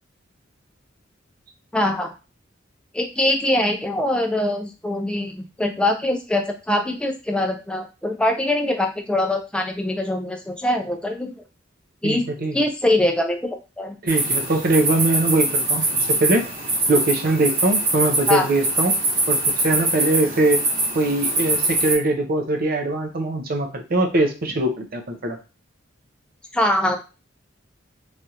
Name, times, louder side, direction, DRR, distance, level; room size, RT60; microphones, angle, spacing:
voice 1, 1.7-2.1 2.9-11.3 12.0-12.3 12.5-13.9 18.3-18.4 26.5-27.0, left 1 dB, 5° left, 4 dB, 0.4 m, -23 dB
voice 2, 12.0-12.6 14.0-15.8 16.1-16.5 16.9-18.9 19.3-20.6 20.9-25.4, right 2 dB, 50° right, 4 dB, 0.6 m, -22 dB
sound 1, 14.1-21.9, right 2 dB, 65° right, 1.6 m, -23 dB
3.3 x 2.4 x 2.8 m, 0.30 s
head